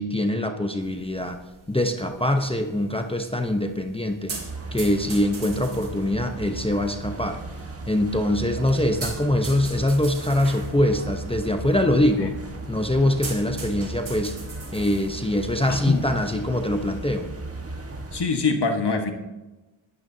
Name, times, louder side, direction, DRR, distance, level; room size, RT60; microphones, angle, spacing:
voice 1, 0.0-1.4 1.7-4.4 4.7-7.4 7.9-12.3 12.7-14.4 14.7-17.3, left 1 dB, 10° left, 4 dB, 0.9 m, -23 dB
sound 1, 0.8-18.3, right 4 dB, 70° right, 3.7 m, -43 dB
sound 2, 4.3-18.2, right 2 dB, 30° right, 1.6 m, -36 dB
voice 2, 15.7-16.0 18.1-19.1, left 4 dB, 55° left, 4 dB, 1.6 m, -24 dB
22.5 x 12.5 x 2.8 m, 1.1 s
wide cardioid pair, 90°, 48 cm